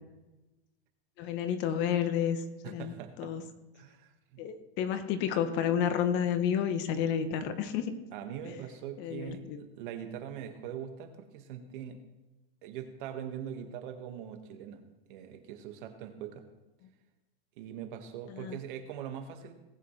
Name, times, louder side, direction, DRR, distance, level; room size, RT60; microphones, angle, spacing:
voice 1, 1.2-3.4 4.4-7.9 8.4-8.6 9.0-9.6 18.3-18.5, left 8 dB, 35° left, 10 dB, 1.0 m, -31 dB
voice 2, 2.6-3.3 3.7-4.4 8.1-12.0 12.6-14.8 15.1-16.4 17.6-19.5, right 9 dB, 55° right, 6 dB, 1.7 m, -42 dB
19.0 x 8.3 x 3.3 m, 1.1 s
supercardioid pair, 150°, 30 cm